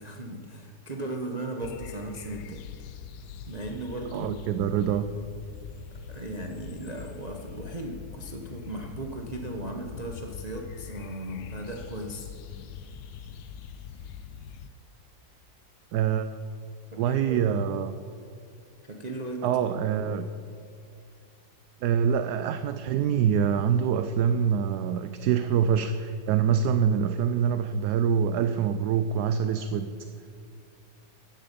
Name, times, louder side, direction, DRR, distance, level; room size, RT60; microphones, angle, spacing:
voice 1, 0.0-2.6 3.5-4.4 6.1-12.3 16.9-17.5 18.8-20.2, right 1 dB, 35° right, 1 dB, 0.7 m, -37 dB
sound 1, 1.6-14.7, left 7 dB, 75° left, 1.3 m, -43 dB
voice 2, 4.1-5.0 15.9-16.3 17.0-17.9 19.4-20.3 21.8-29.9, right 8 dB, 70° right, 10 dB, 1.1 m, -25 dB
14.5 x 11.0 x 5.2 m, 2.3 s
omnidirectional pair, 1.9 m